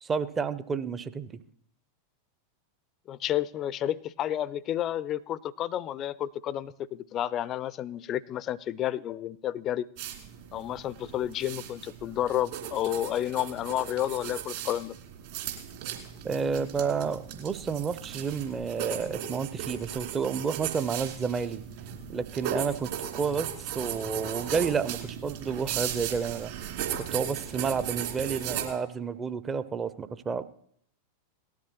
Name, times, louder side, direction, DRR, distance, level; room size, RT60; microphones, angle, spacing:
voice 1, 0.0-1.4 16.2-21.6 22.1-26.5 27.0-30.4, right 6 dB, 20° right, 14 dB, 0.5 m, -30 dB
voice 2, 3.1-9.9 10.5-15.0, left 12 dB, 30° left, 21 dB, 0.4 m, -31 dB
sound 1, 10.0-28.7, right 9 dB, 55° right, 2.5 m, -37 dB
18.5 x 13.0 x 2.9 m, 0.65 s
figure-of-eight pair, 90°, 0 cm